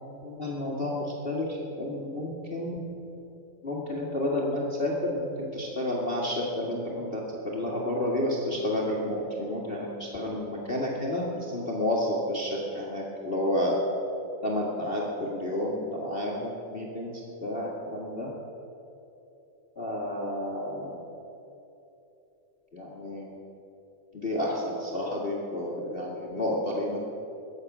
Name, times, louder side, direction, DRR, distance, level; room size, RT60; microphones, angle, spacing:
voice 1, 0.0-2.8 3.6-13.7 14.4-17.1 17.4-18.3 19.7-21.0 22.7-23.3 24.1-27.0, left 1 dB, 25° left, -3 dB, 1.3 m, -30 dB
22.0 x 8.4 x 6.1 m, 2.9 s
omnidirectional pair, 3.8 m